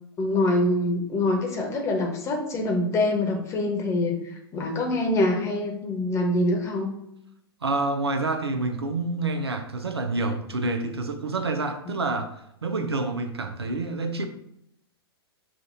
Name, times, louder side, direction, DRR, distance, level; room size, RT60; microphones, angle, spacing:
voice 1, 0.2-6.9, left 2 dB, 20° left, 1 dB, 1.0 m, -25 dB
voice 2, 7.6-12.3 12.6-14.3, right 3 dB, 80° right, 7 dB, 0.6 m, -28 dB
7.3 x 2.5 x 2.6 m, 0.78 s
figure-of-eight pair, 105°, 13 cm